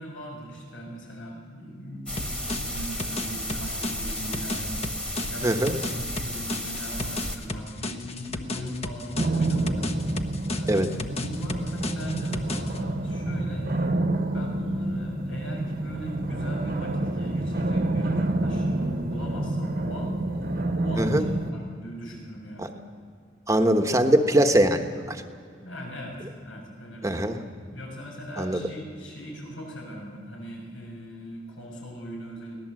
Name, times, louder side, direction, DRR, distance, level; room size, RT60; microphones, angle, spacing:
voice 1, 0.0-4.8 5.3-10.2 10.5-13.7 14.3-22.8 25.6-27.3 27.7-32.6, equal, 85° left, -1 dB, 7.0 m, -39 dB
sound 1, 2.1-7.4, equal, 5° left, 1.7 m, -33 dB
sound 2, 2.2-12.8, left 2 dB, 35° left, 1.1 m, -35 dB
voice 2, 5.4-5.7 10.7-10.9 21.0-21.2 22.6-22.7 23.5-25.2 27.0-27.4 28.4-28.6, right 1 dB, 15° right, 6 dB, 1.2 m, -22 dB
sound 3, 9.1-21.5, right 2 dB, 50° right, 1.2 m, -28 dB
24.0 x 18.0 x 7.7 m, 2.2 s
head